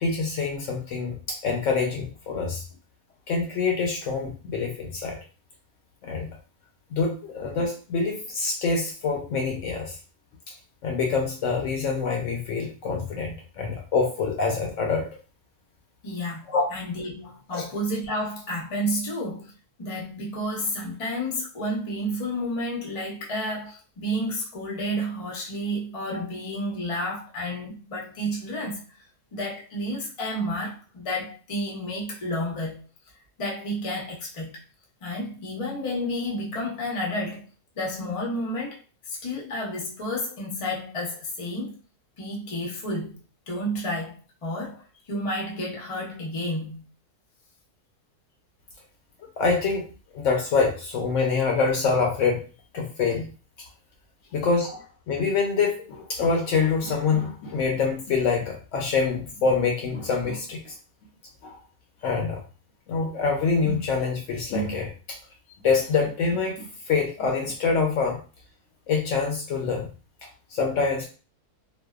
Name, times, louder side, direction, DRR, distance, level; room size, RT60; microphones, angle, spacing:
voice 1, 0.0-2.6 3.3-5.2 6.0-6.3 6.9-10.0 10.8-15.1 16.5-16.6 17.5-17.6 49.4-49.9 50.1-52.4 52.7-53.3 54.3-60.7 61.4-61.6 62.0-62.4 62.9-65.2 65.6-68.2 68.9-69.9 70.5-71.1, left 4 dB, 70° left, 0.8 m, -25 dB
voice 2, 16.0-19.5 19.8-28.8 29.3-32.8 33.4-34.6 35.0-37.5 37.8-38.8 39.1-41.8 42.2-43.2 43.5-46.9, equal, 50° left, 0.3 m, -31 dB
2.6 x 2.1 x 2.3 m
omnidirectional pair, 1.6 m